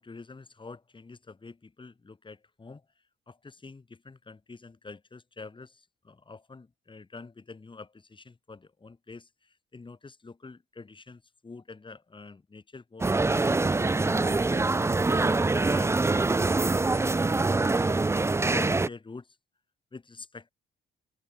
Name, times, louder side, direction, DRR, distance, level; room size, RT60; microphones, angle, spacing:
voice 1, 0.0-2.8 3.3-18.0 18.5-19.4 19.9-20.5, left 4 dB, 25° left, 2.5 m, -46 dB
sound 1, 13.0-18.9, right 3 dB, 15° right, 0.5 m, -24 dB
cardioid pair, 90°, 20 cm